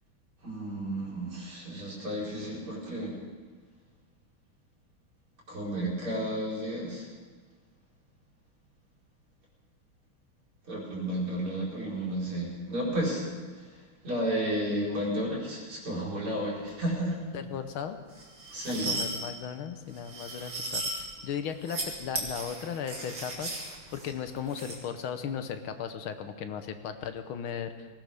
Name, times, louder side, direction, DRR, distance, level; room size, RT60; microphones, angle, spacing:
voice 1, 0.4-3.2 5.5-7.1 10.6-17.2 18.5-19.0, right 1 dB, 85° right, -5 dB, 5.2 m, -32 dB
voice 2, 17.3-18.0 18.7-23.6 23.9-27.9, left 8 dB, 75° left, 8 dB, 1.7 m, -36 dB
sound 1, 18.1-19.2 19.9-21.0 21.5-21.9 22.1-24.8, right 2 dB, 45° right, 2.9 m, -36 dB
19.5 x 18.5 x 3.5 m, 1.4 s
omnidirectional pair, 2.3 m